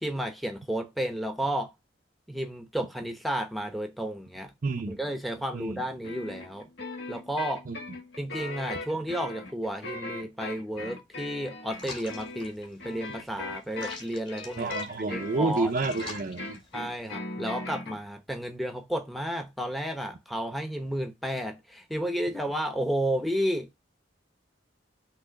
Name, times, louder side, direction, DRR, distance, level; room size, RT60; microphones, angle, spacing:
voice 1, 0.0-1.7 2.3-4.5 4.9-6.7 7.1-7.6 8.2-15.7 16.7-23.7, equal, ahead, 0.9 m, -32 dB
voice 2, 4.6-5.0 5.5-5.8 7.7-7.8 14.6-16.6, right 3 dB, 50° right, 0.6 m, -29 dB
sound 1, 6.0-18.0, left 2 dB, 65° left, 1.8 m, -39 dB
sound 2, 11.7-17.1, left 3 dB, 30° left, 2.0 m, -46 dB
6.2 x 3.0 x 5.6 m
head